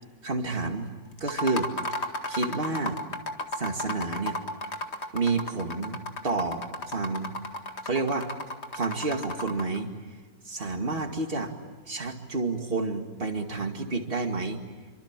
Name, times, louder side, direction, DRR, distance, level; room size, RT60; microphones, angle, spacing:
voice 1, 0.2-0.9 1.2-1.7 2.3-3.0 3.6-4.4 5.1-7.3 7.8-8.3 8.7-9.9 10.5-11.5 11.9-14.6, right 3 dB, 30° right, 4 dB, 2.4 m, -29 dB
sound 1, 1.2-9.8, left 1 dB, 40° left, 2.1 m, -34 dB
27.5 x 25.0 x 7.5 m, 1.5 s
omnidirectional pair, 1.8 m